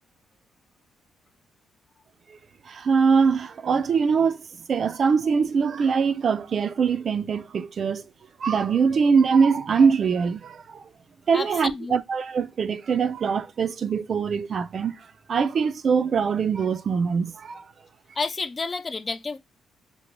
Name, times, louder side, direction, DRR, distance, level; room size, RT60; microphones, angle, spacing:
voice 1, 2.7-8.0 8.4-10.8 11.3-17.6, right 5 dB, 50° right, 0.3 m, -23 dB
voice 2, 11.3-12.0 18.2-19.4, left 4 dB, 30° left, 0.3 m, -30 dB
2.8 x 2.1 x 2.9 m
cardioid pair, 90°, 0 cm